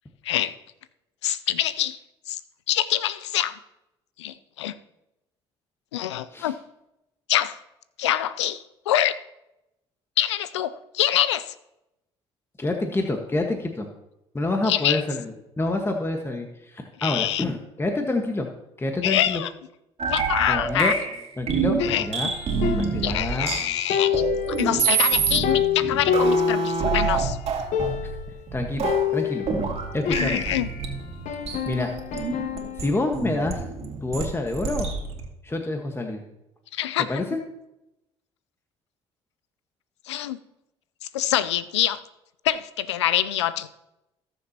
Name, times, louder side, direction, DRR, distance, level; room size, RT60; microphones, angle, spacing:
voice 1, 1.2-2.0 2.3-2.4 2.7-3.6 4.2-4.7 5.9-6.5 7.3-7.5 8.0-9.1 10.2-11.5 14.7-15.0 17.0-17.4 19.0-19.5 20.1-20.9 21.8-22.1 23.0-27.4 30.1-30.7 36.7-37.2 40.1-40.4 41.1-42.0 42.4-43.7, left 12 dB, 85° left, 16 dB, 0.5 m, -25 dB
voice 2, 12.6-13.9 14.3-18.5 18.8-19.4 20.5-20.9 21.4-22.3 22.8-23.5 28.0-28.1 28.5-29.5 29.9-30.4 31.7-31.9 32.8-33.7 34.0-34.9 35.4-36.2 37.1-37.4, left 2 dB, 15° left, 3 dB, 1.5 m, -27 dB
sound 1, 20.0-35.3, right 5 dB, 45° right, 2.5 m, -27 dB
sound 2, 21.8-23.6 23.9-27.2 27.5-27.6 27.7-28.3 28.8-30.8 31.3-32.9, left 7 dB, 55° left, 1.1 m, -28 dB
19.5 x 7.1 x 2.9 m, 0.90 s
hypercardioid pair, 60°, 14 cm